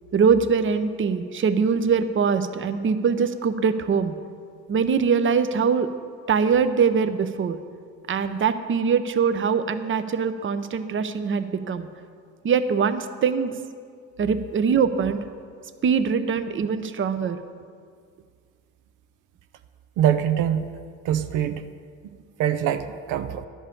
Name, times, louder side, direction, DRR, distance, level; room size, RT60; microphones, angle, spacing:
voice 1, 0.1-4.1 4.7-5.9 6.3-7.6 8.1-11.9 12.4-13.5 14.2-15.2 15.8-17.4, right 6 dB, 40° right, 11 dB, 0.7 m, -22 dB
voice 2, 20.0-20.7 21.0-21.6 22.0-22.1 22.4-23.4, right 10 dB, 90° right, 8 dB, 0.6 m, -23 dB
11.0 x 5.5 x 8.4 m, 2.1 s
cardioid pair, 90°, 30 cm